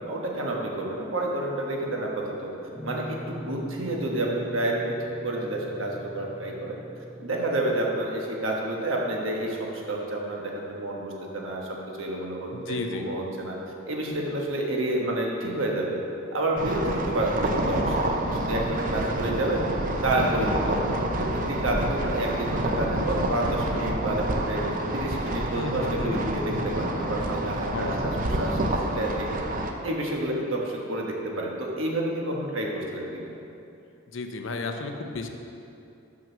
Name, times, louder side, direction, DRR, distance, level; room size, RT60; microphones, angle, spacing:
voice 1, 0.0-2.5 2.8-5.0 5.2-6.8 7.2-13.6 13.9-16.0 16.3-19.7 20.0-24.6 24.9-29.3 29.8-33.3, right 1 dB, 70° right, -1 dB, 1.2 m, -29 dB
Guitar, 2.7-8.0, equal, ahead, 1.0 m, -41 dB
voice 2, 12.5-13.1 25.5-26.2 27.7-27.9 34.1-35.3, left 3 dB, 65° left, 5 dB, 0.6 m, -33 dB
sound 1, 16.6-29.7, right 1 dB, 40° right, 0.6 m, -28 dB
6.2 x 6.1 x 6.1 m, 2.7 s
head